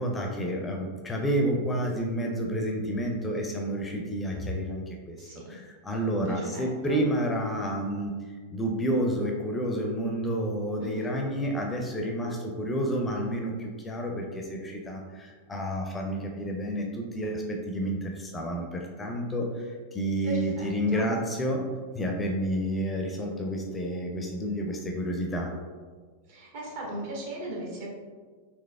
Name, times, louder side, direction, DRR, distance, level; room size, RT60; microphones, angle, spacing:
voice 1, 0.0-21.7 21.9-25.5, equal, 15° left, 1 dB, 0.4 m, -30 dB
voice 2, 5.2-5.5 6.2-7.0 10.8-11.1 20.2-21.1 26.3-27.9, right 1 dB, 55° right, -3 dB, 1.1 m, -37 dB
3.9 x 2.9 x 2.2 m, 1.5 s
figure-of-eight pair, 90°, 0 cm